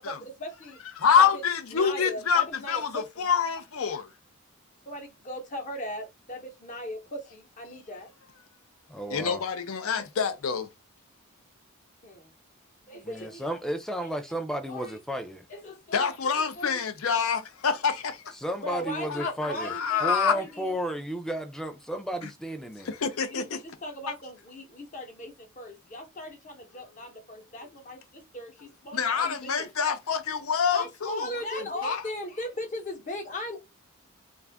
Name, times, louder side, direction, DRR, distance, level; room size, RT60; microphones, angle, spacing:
voice 1, 0.0-0.8 1.2-1.3 1.7-3.3 4.9-8.1 12.0-12.3 12.8-13.4 14.0-14.1 14.7-15.0 15.5-16.1 16.6-16.8 18.6-20.7 23.3-29.7 30.7-33.6, left 1 dB, 35° left, 0.8 m, -38 dB
voice 2, 1.0-4.1 7.7-7.8 9.1-10.7 15.9-18.3 19.1-20.3 22.2-22.3 22.8-23.6 24.1-24.2 27.6-27.7 28.9-31.4 31.8-32.0, left 6 dB, 75° left, 0.5 m, -26 dB
voice 3, 8.9-9.4 13.0-15.4 18.4-19.8 20.0-23.0, equal, ahead, 0.3 m, -33 dB
2.5 x 2.4 x 3.3 m
head